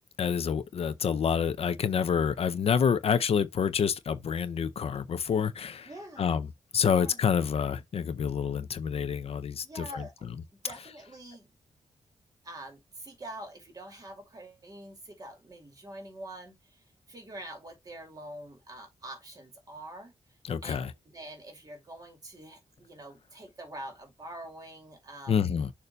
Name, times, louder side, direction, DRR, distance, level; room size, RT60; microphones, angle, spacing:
voice 1, 0.2-5.9 6.2-6.5 6.7-10.1 20.4-20.9 25.3-25.7, left 7 dB, 60° left, 0.5 m, -28 dB
voice 2, 5.9-6.2 6.9-7.2 9.6-10.1 10.6-11.5 12.4-20.1 20.6-25.4, right 1 dB, 35° right, 2.4 m, -45 dB
6.7 x 2.7 x 5.2 m
wide cardioid pair, 160°, 12 cm